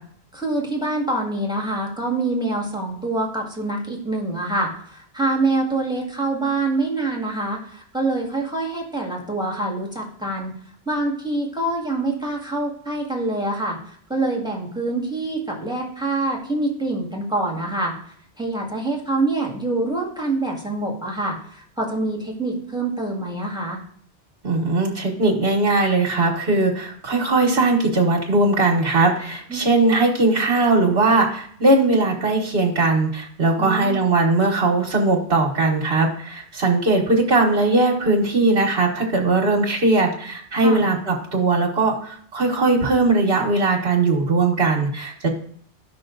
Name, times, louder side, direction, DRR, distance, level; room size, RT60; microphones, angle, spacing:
voice 1, 0.3-10.6 10.9-17.9 18.4-23.8 29.5-29.6 33.6-34.0 40.6-40.8, right 2 dB, 5° right, -1 dB, 1.8 m, -25 dB
voice 2, 24.4-45.3, right 2 dB, 65° right, -2 dB, 1.6 m, -19 dB
13.5 x 5.8 x 3.9 m, 0.62 s
omnidirectional pair, 1.1 m